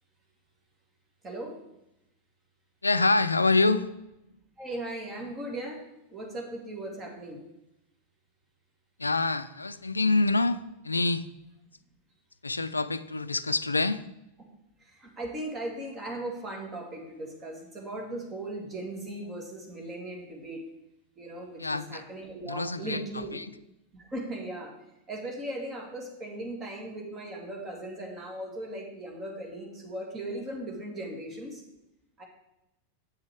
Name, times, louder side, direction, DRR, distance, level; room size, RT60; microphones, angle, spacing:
voice 1, 1.2-1.6 4.6-5.8 6.1-7.4 14.8-20.6 21.2-23.4 23.9-24.7 25.1-31.6 32.2-32.3, right 1 dB, 20° right, 0 dB, 2.3 m, -38 dB
voice 2, 2.8-3.9 9.0-10.6 10.8-11.3 12.4-14.0 21.6-22.0 22.4-23.5, left 3 dB, 80° left, 14 dB, 0.4 m, -26 dB
8.5 x 7.3 x 4.7 m, 0.89 s
figure-of-eight pair, 90°, 0 cm